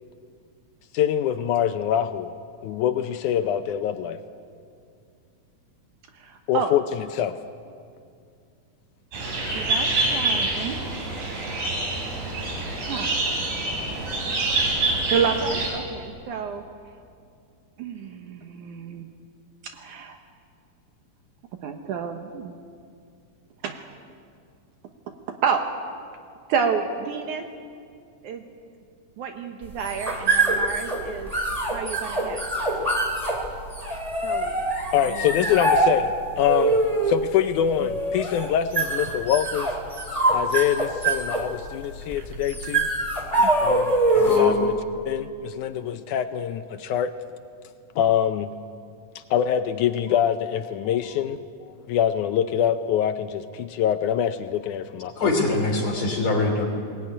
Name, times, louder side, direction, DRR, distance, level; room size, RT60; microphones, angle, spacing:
voice 1, 0.9-2.3 2.6-4.2 6.5-7.3 34.9-36.8 37.1-39.7 40.3-42.9 43.6-44.7 45.1-47.1 48.0-48.5 49.2-51.4 51.9-55.6, left 9 dB, 75° left, 10 dB, 2.0 m, -24 dB
voice 2, 6.1-6.7 9.5-10.8 12.9-13.2 15.1-16.6 17.8-19.1 19.6-20.2 21.6-22.6 23.6-23.9 25.3-25.6 26.5-27.5 28.2-28.4 29.2-31.3 31.7-32.4 34.2-34.6 35.1-35.2 40.2-40.4 43.4-43.5, right 6 dB, 70° right, 5 dB, 2.4 m, -29 dB
sound 1, 9.1-15.7, right 2 dB, 90° right, 5.6 m, -26 dB
sound 2, 29.6-44.5, right 2 dB, 10° right, 2.4 m, -24 dB
voice 3, 44.2-44.6 55.2-56.7, left 3 dB, 55° left, 1 dB, 3.9 m, -22 dB
20.5 x 19.5 x 9.7 m, 2.3 s
omnidirectional pair, 3.9 m